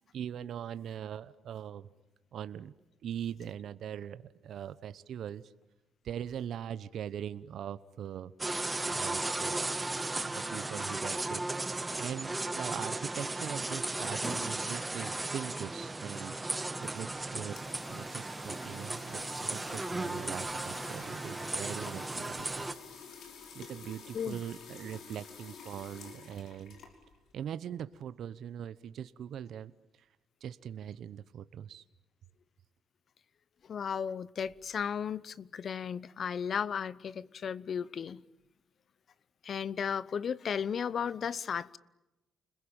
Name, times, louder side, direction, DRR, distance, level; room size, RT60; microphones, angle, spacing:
voice 1, 0.1-1.9 2.3-2.7 3.0-5.5 6.0-8.3 8.9-9.7 10.3-11.4 12.0-16.3 16.8-22.7 23.5-26.8 27.3-29.7 30.0-30.1 30.4-31.8, right 9 dB, 70° right, 0.9 m, -41 dB
sound 1, 8.4-22.7, right 2 dB, 15° right, 1.8 m, -36 dB
sound 2, 12.7-17.9, left 1 dB, 10° left, 1.6 m, -49 dB
sound 3, 17.3-27.3, left 6 dB, 70° left, 5.4 m, -50 dB
voice 2, 33.7-38.2 39.4-41.8, left 7 dB, 55° left, 0.9 m, -35 dB
30.0 x 21.5 x 8.9 m
cardioid pair, 90°, 0 cm